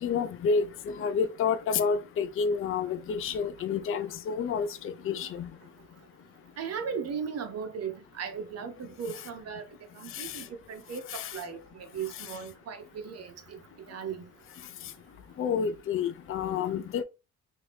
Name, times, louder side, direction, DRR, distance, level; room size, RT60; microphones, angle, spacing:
voice 1, 0.0-5.5 10.1-10.4 11.1-11.3 15.4-17.0, left 6 dB, 45° left, 0.5 m, -29 dB
voice 2, 6.6-9.6 10.0-13.6 13.9-14.2, right 6 dB, 55° right, 0.7 m, -37 dB
2.8 x 2.6 x 3.2 m
cardioid pair, 90°, 30 cm